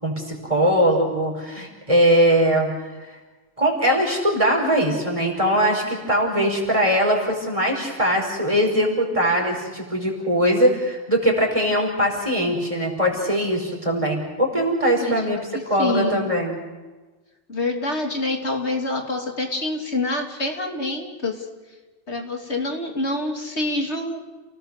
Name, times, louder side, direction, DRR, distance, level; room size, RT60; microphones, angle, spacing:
voice 1, 0.0-2.7 3.6-15.4 15.7-16.6, equal, 30° right, 0 dB, 4.9 m, -21 dB
voice 2, 15.8-16.3 17.5-21.4 22.1-24.2, left 2 dB, 70° left, 3 dB, 3.1 m, -26 dB
30.0 x 18.0 x 6.7 m, 1.3 s
omnidirectional pair, 1.2 m